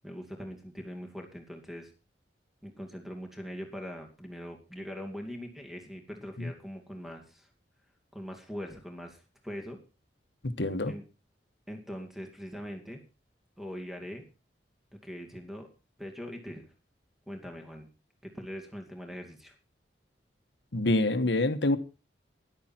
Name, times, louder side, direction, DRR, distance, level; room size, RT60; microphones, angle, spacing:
voice 1, 0.0-1.9 2.6-7.5 8.1-9.8 10.9-11.0 11.7-13.0 13.6-14.3 15.0-15.7 16.0-16.7 17.3-17.9 18.2-19.5, equal, ahead, 4 dB, 2.4 m, -42 dB
voice 2, 10.4-10.9 20.7-21.8, left 2 dB, 85° left, 9 dB, 1.3 m, -26 dB
13.0 x 11.5 x 4.4 m, 0.31 s
head